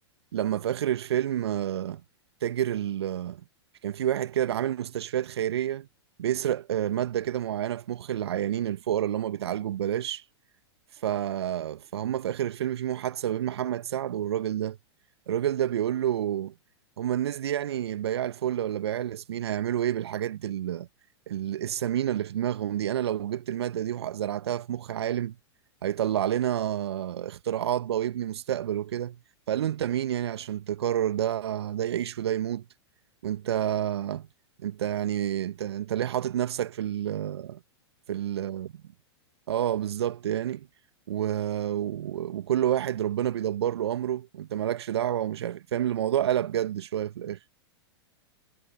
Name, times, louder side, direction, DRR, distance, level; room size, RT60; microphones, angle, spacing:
voice 1, 0.3-2.0 2.4-3.4 3.8-5.9 6.2-10.2 11.0-14.8 15.3-16.5 17.0-20.9 21.3-25.3 25.8-29.2 29.5-32.6 33.2-34.3 34.6-37.6 38.1-38.7 39.5-40.7 41.1-47.4, right 11 dB, 65° right, 1.4 m, -29 dB
figure-of-eight pair, 100°, 15 cm